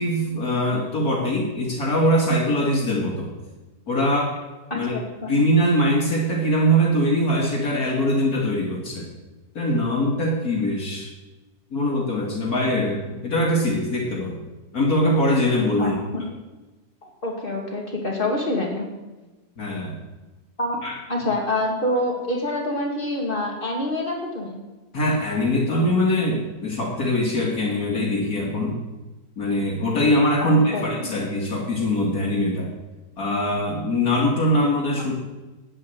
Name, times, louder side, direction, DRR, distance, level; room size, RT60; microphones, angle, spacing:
voice 1, 0.0-3.3 3.9-4.3 4.7-4.9 5.3-9.1 9.5-11.1 11.7-14.4 14.7-16.0 19.6-20.0 20.8-20.9 24.9-28.8 29.4-32.7 33.2-35.1, equal, 70° left, -2 dB, 2.8 m, -22 dB
voice 2, 4.7-5.4 15.8-16.2 17.0-18.9 20.6-20.8 21.1-24.6 30.4-31.1, left 1 dB, 35° left, -2 dB, 3.0 m, -26 dB
11.0 x 8.6 x 9.3 m, 1.1 s
omnidirectional pair, 1.7 m